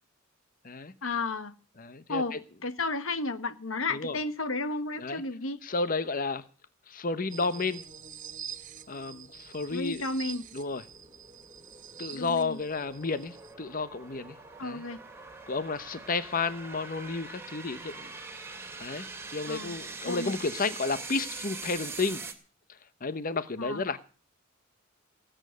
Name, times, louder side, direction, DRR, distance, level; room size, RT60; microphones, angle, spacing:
voice 1, 1.0-1.6 2.1-5.6 9.7-10.4 12.1-12.6 14.6-15.0 19.5-19.7 20.0-20.3 23.6-23.8, left 3 dB, 90° left, 12 dB, 1.5 m, -33 dB
voice 2, 1.8-2.4 3.9-4.2 5.0-5.2 5.6-6.4 6.9-7.8 8.9-10.0 10.5-10.8 12.0-14.4 14.6-14.8 15.5-18.1 18.8-19.1 19.3-22.2 23.0-24.0, left 4 dB, 45° left, 14 dB, 0.9 m, -32 dB
sound 1, 7.3-13.5, right 8 dB, 40° right, 1.3 m, -46 dB
sound 2, 7.8-22.3, right 4 dB, 10° right, 2.4 m, -44 dB
19.0 x 8.9 x 6.5 m, 0.38 s
head